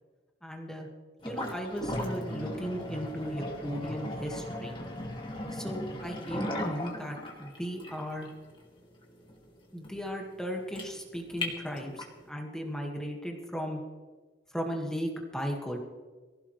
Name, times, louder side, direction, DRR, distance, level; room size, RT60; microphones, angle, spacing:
voice 1, 0.4-0.9 1.2-4.8 5.5-8.3 9.7-13.8 14.5-15.8, equal, 5° left, 0 dB, 1.8 m, -36 dB
sound 1, 1.2-12.2, left 1 dB, 25° left, 2.3 m, -38 dB
24.0 x 16.0 x 3.3 m, 1.4 s
head